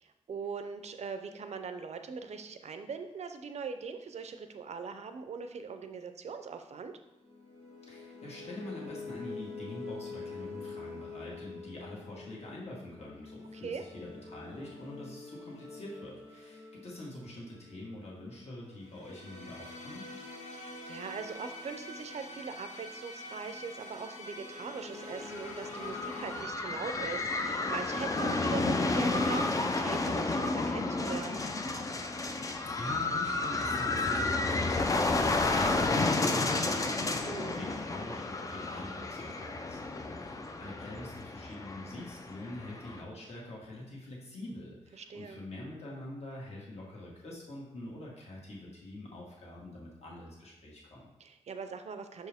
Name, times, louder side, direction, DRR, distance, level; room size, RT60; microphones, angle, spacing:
voice 1, 0.0-6.9 13.5-13.8 20.5-31.4 37.2-37.6 44.9-45.4 51.2-52.3, right 5 dB, 65° right, 8 dB, 0.5 m, -41 dB
sound 1, 7.2-26.4, left 3 dB, 85° left, 1.4 m, -46 dB
voice 2, 7.9-20.0 32.2-51.1, left 1 dB, 60° left, -4 dB, 1.7 m, -45 dB
sound 2, 25.4-43.0, left 3 dB, 30° left, 0.4 m, -31 dB
6.2 x 4.4 x 3.5 m, 0.96 s
wide cardioid pair, 120°, 12 cm